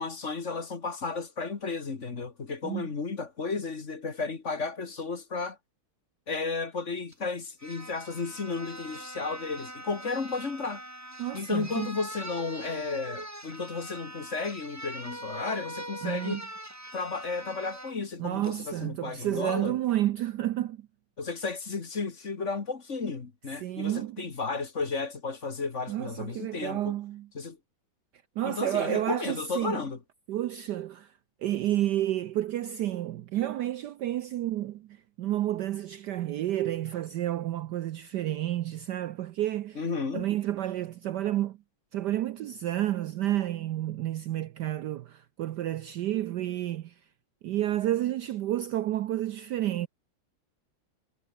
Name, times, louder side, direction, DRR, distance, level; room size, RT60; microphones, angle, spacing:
voice 1, 0.0-5.6 6.3-10.8 11.3-16.4 16.9-19.8 21.2-26.9 27.3-27.6 28.4-30.0 39.8-40.3, left 4 dB, 35° left, 1.9 m, -33 dB
sound 1, 7.1-7.2 7.6-18.0 18.4-18.6, right 1 dB, 5° right, 2.8 m, -42 dB
voice 2, 11.2-11.9 16.0-16.4 18.2-20.9 23.6-24.2 25.9-27.3 28.4-29.8 30.3-31.1 31.4-34.9 35.2-39.8 40.1-41.6 41.9-46.9 47.4-49.9, right 13 dB, 70° right, 1.1 m, -30 dB
omnidirectional pair, 2.3 m